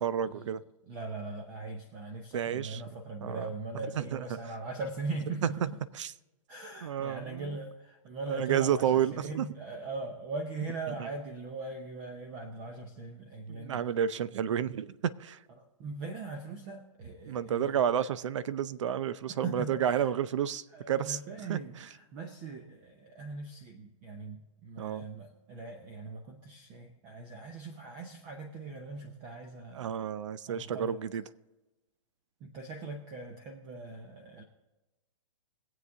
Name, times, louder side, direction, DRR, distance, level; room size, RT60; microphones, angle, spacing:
voice 1, 0.0-0.6 2.3-2.8 3.2-3.5 3.9-4.2 5.9-6.1 6.8-7.6 8.3-9.5 11.0-11.1 13.5-15.4 17.3-21.2 21.5-21.6 24.8-25.1 29.7-31.2, right 9 dB, 55° right, 17 dB, 0.6 m, -31 dB
voice 2, 0.9-5.8 6.5-13.8 15.6-17.8 19.3-20.1 20.7-29.9 30.5-31.0 32.4-34.4, right 3 dB, 20° right, 5 dB, 0.8 m, -40 dB
22.0 x 8.2 x 3.6 m, 1.1 s
hypercardioid pair, 160°, 18 cm